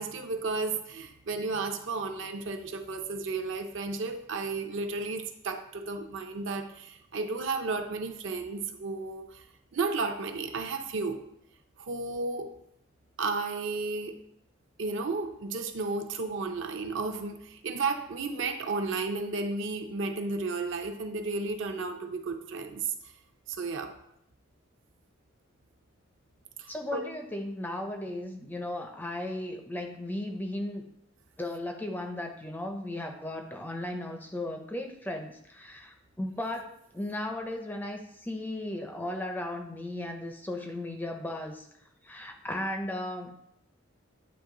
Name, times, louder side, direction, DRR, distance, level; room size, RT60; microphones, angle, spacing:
voice 1, 0.0-9.4 9.7-11.2 11.8-12.5 13.2-14.2 14.8-22.9 23.5-23.9 26.6-27.1, right 3 dB, 70° right, 5 dB, 0.6 m, -33 dB
voice 2, 26.7-30.9 31.4-41.7 42.0-43.4, left 1 dB, 10° left, 4 dB, 0.4 m, -36 dB
8.9 x 3.0 x 3.7 m, 0.75 s
head